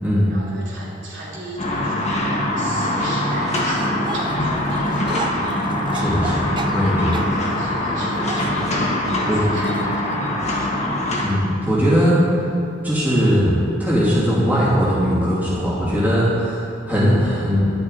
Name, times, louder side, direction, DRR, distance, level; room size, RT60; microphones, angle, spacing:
voice 1, 0.3-2.0 2.5-5.5 7.3-8.7 9.0-10.8, right 1 dB, 70° right, -7 dB, 2.9 m, -36 dB
sound 1, 1.6-11.3, left 1 dB, 35° left, 1.6 m, -23 dB
sound 2, 3.5-7.4 8.1-8.8 9.6-9.8 10.1-10.2 11.2-11.3, right 3 dB, 25° right, 0.5 m, -33 dB
voice 2, 5.9-6.4 6.7-7.2 9.3-9.4 11.2-12.2 12.8-17.7, equal, 10° right, -10 dB, 2.5 m, -19 dB
11.0 x 10.5 x 4.0 m, 2.7 s
head